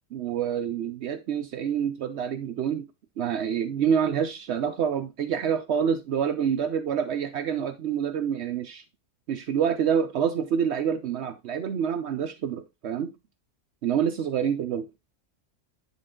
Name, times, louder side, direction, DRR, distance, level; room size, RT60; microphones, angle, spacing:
voice 1, 0.1-2.9 3.2-8.8 9.3-13.1 13.8-14.9, right 8 dB, 65° right, 0.9 m, -27 dB
9.8 x 3.7 x 3.6 m
omnidirectional pair, 1.3 m